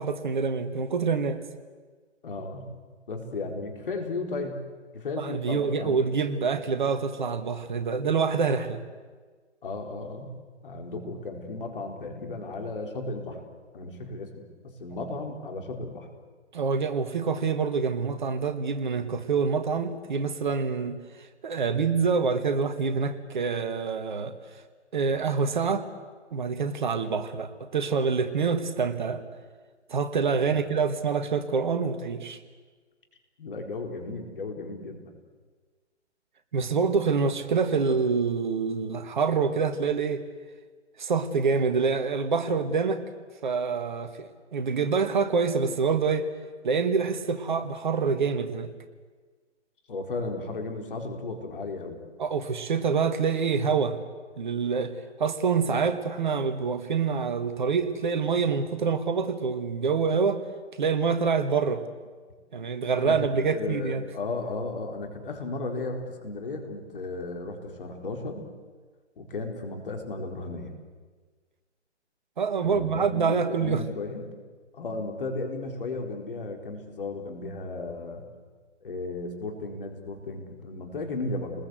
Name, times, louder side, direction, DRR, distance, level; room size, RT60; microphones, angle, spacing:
voice 1, 0.0-1.4 5.2-8.8 16.5-21.0 21.4-24.3 24.9-25.9 26.3-29.2 29.9-32.4 36.5-40.2 41.0-43.0 43.4-46.3 46.6-48.7 52.2-54.0 54.4-54.9 55.2-60.4 60.8-61.8 62.5-64.0 72.4-73.8, right 5 dB, 40° right, 10 dB, 1.5 m, -26 dB
voice 2, 2.2-2.7 3.1-4.6 4.9-6.0 9.6-10.3 10.6-13.4 13.7-16.1 30.3-30.5 33.4-35.2 49.9-52.0 63.0-68.4 69.2-70.7 72.6-74.3 74.7-78.2 78.8-81.6, left 3 dB, 45° left, 3 dB, 4.2 m, -35 dB
29.0 x 20.5 x 8.0 m, 1.4 s
figure-of-eight pair, 140°, 36 cm